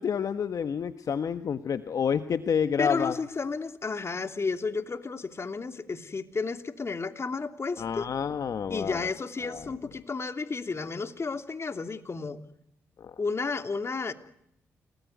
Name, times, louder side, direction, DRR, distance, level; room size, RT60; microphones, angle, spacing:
voice 1, 0.0-3.2 7.8-9.1 9.4-9.6 13.0-13.1, left 7 dB, 60° left, 11 dB, 1.3 m, -29 dB
voice 2, 2.8-8.1 8.7-12.4 13.2-14.1, left 4 dB, 40° left, 8 dB, 3.0 m, -32 dB
29.5 x 19.5 x 9.4 m, 0.75 s
supercardioid pair, 45°, 7 cm